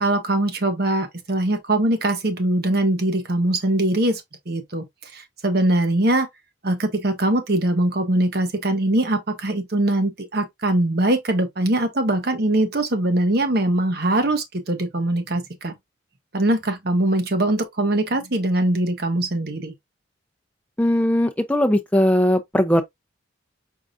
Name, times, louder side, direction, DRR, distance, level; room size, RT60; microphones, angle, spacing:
voice 1, 0.0-4.2 4.5-4.8 5.1-6.3 6.6-15.7 16.3-19.7, right 1 dB, 50° right, 1.0 m, -22 dB
voice 2, 20.8-22.8, left 1 dB, 5° left, 0.6 m, -19 dB
4.8 x 3.9 x 2.4 m
head